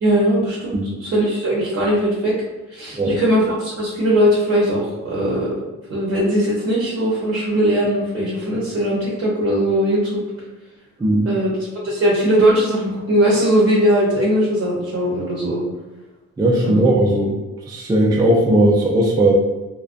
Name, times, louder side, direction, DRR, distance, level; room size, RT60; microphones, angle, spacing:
voice 1, 0.0-2.4 2.7-5.5 5.9-10.2 11.2-15.6 16.6-16.9, equal, 45° right, -5 dB, 0.7 m, -19 dB
voice 2, 11.0-11.3 16.4-17.4 17.7-19.3, right 1 dB, 15° right, -2 dB, 0.3 m, -17 dB
2.4 x 2.1 x 2.5 m, 1.1 s
cardioid pair, 90°, 30 cm